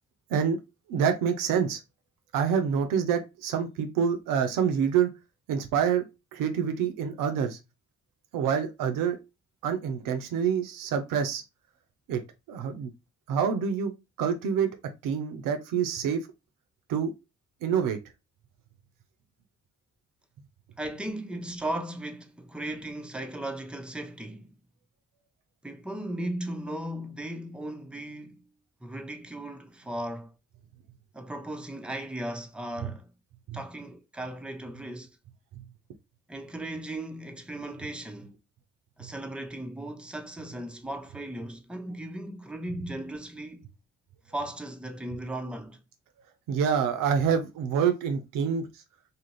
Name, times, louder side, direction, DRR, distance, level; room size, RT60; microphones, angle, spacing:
voice 1, 0.3-0.6 0.9-1.8 2.3-5.1 5.5-6.1 6.3-7.6 8.3-9.2 9.6-11.4 12.1-12.2 12.5-12.9 13.3-13.9 14.2-14.8 15.0-16.2 16.9-17.1 17.6-18.0 32.8-32.9 33.5-33.6 35.6-35.7 39.0-39.1 46.5-48.6, right 7 dB, 75° right, 0.6 m, -26 dB
voice 2, 20.8-24.5 25.6-28.4 28.8-30.3 31.1-33.1 33.5-35.1 36.3-38.3 39.0-43.7 44.3-45.8, right 1 dB, 5° right, 0.6 m, -37 dB
2.8 x 2.5 x 3.0 m
hypercardioid pair, 40°, 33 cm